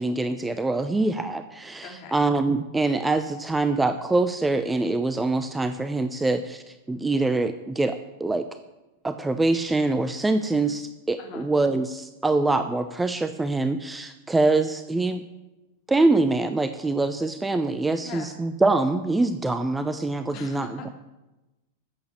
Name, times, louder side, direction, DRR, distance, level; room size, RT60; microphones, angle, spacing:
voice 1, 0.0-8.5 9.0-15.2 15.9-20.9, right 2 dB, 10° right, 10 dB, 0.7 m, -24 dB
voice 2, 1.8-2.2 11.2-11.5 18.0-18.3 20.3-20.9, left 4 dB, 40° left, 2 dB, 3.1 m, -40 dB
13.0 x 8.1 x 8.3 m, 1.0 s
figure-of-eight pair, 90°, 0 cm